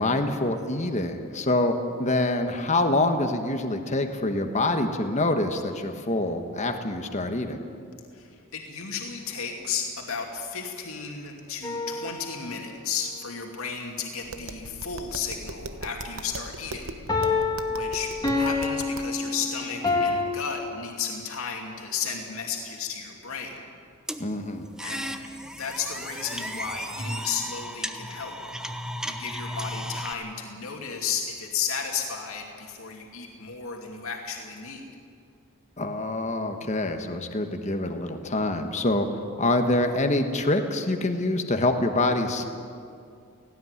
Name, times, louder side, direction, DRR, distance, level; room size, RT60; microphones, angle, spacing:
voice 1, 0.0-1.7 2.0-7.6 24.2-24.7 35.8-39.1 39.4-42.4, left 2 dB, 35° left, 5 dB, 1.3 m, -25 dB
voice 2, 8.1-16.9 17.2-23.6 24.8-25.1 25.6-28.4 29.1-34.8, left 6 dB, 70° left, 1 dB, 2.5 m, -33 dB
sound 1, 11.6-12.7 17.1-20.3, left 3 dB, 20° left, 2.4 m, -27 dB
Tap, 14.2-19.2, right 2 dB, 70° right, 1.1 m, -40 dB
sound 2, 24.1-30.1, equal, 5° right, 0.9 m, -35 dB
18.0 x 16.5 x 9.7 m, 2.4 s
head